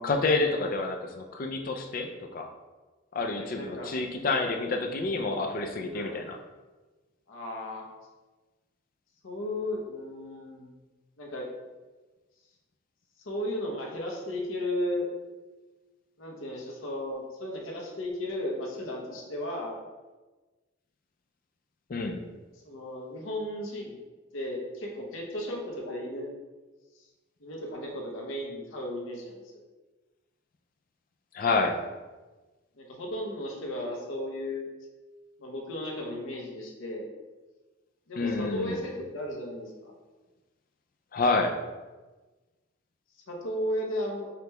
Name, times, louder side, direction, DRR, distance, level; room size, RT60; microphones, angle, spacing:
voice 1, 0.0-2.5 3.1-6.4 21.9-22.2 31.3-31.8 38.2-38.8 41.1-41.6, left 3 dB, 45° left, 4 dB, 0.3 m, -28 dB
voice 2, 3.3-4.0 5.9-6.2 7.3-7.8 9.2-10.7 11.2-11.5 13.2-15.1 16.2-19.8 22.6-24.0 24.3-26.3 27.4-29.4 32.8-34.6 35.4-37.1 38.1-39.9 43.3-44.3, left 1 dB, 75° left, -1 dB, 0.8 m, -35 dB
5.0 x 2.2 x 2.9 m, 1.2 s
head